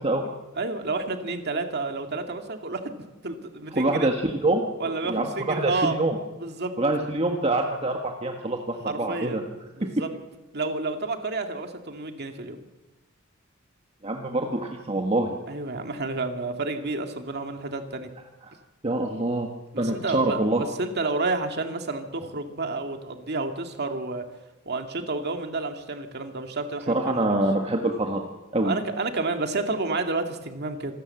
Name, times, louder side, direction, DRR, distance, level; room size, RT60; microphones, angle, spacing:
voice 1, 0.6-2.9 3.2-4.1 4.8-6.0 6.4-6.7 8.9-9.4 9.7-10.1 10.5-12.6 15.5-18.1 19.7-24.2 24.7-27.4 28.6-30.9, right 3 dB, 55° right, 5 dB, 2.2 m, -30 dB
voice 2, 3.7-6.2 6.8-9.4 14.0-15.4 18.8-19.5 19.8-20.6 26.9-28.2 28.5-28.8, right 2 dB, 30° right, 2 dB, 1.5 m, -25 dB
26.5 x 13.0 x 7.8 m, 1.1 s
head